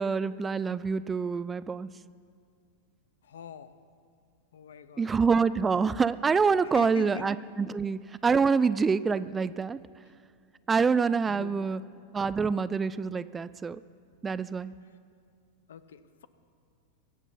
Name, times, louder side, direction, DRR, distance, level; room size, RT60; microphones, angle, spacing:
voice 1, 0.0-1.9 5.0-9.8 10.7-11.8 12.1-13.8 14.2-14.7, right 5 dB, 15° right, 16 dB, 0.3 m, -26 dB
voice 2, 3.2-3.8 4.5-5.1 6.6-7.3 11.3-11.7 14.8-15.0 15.7-16.3, left 8 dB, 65° left, 13 dB, 0.7 m, -43 dB
23.0 x 8.1 x 5.6 m, 2.2 s
figure-of-eight pair, 90°, 0 cm